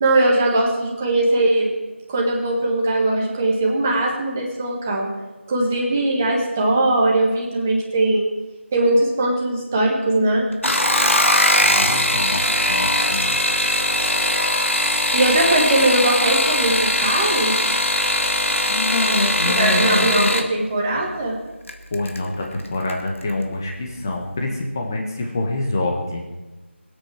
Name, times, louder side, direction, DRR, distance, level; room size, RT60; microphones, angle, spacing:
voice 1, 0.0-1.7 2.1-5.1 5.5-8.3 8.7-10.5 15.1-17.6 19.4-21.4, right 2 dB, 10° right, -2 dB, 1.4 m, -20 dB
sound 1, 10.5-20.5 21.7-22.2 22.6-23.0 23.3-23.4, left 1 dB, 90° left, 2.0 m, -20 dB
voice 2, 11.5-13.4 18.7-20.3 21.9-26.2, left 2 dB, 15° left, 1 dB, 1.4 m, -26 dB
21.0 x 8.8 x 6.1 m, 1.2 s
figure-of-eight pair, 170°, 7 cm